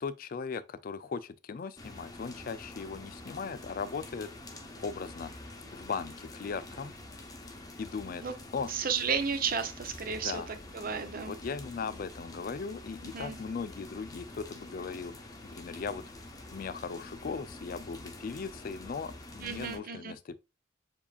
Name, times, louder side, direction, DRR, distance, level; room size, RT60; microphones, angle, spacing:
voice 1, 0.0-4.3 4.8-5.3 5.7-6.9 7.8-8.2 8.5-8.7 10.2-10.5 11.3-16.0 16.5-20.4, left 5 dB, 45° left, 0.4 m, -38 dB
sound 1, 1.8-19.8, left 2 dB, 20° left, 0.7 m, -47 dB
voice 2, 8.7-11.4 13.1-13.4 19.4-20.1, right 6 dB, 50° right, 0.7 m, -33 dB
7.0 x 2.8 x 2.3 m
head